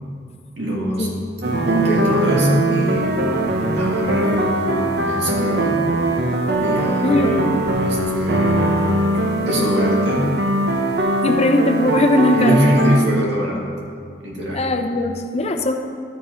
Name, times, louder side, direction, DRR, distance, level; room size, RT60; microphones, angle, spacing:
voice 1, 0.6-1.1 1.4-3.1 3.7-5.8 6.6-8.9 9.4-10.4 12.3-13.7 14.2-14.6, equal, 85° right, -3 dB, 2.1 m, -22 dB
sound 1, 1.4-13.0, right 1 dB, 65° right, 0.8 m, -21 dB
voice 2, 11.2-12.8 14.5-15.7, left 2 dB, 35° left, 5 dB, 0.6 m, -19 dB
12.0 x 5.0 x 5.0 m, 2.3 s
head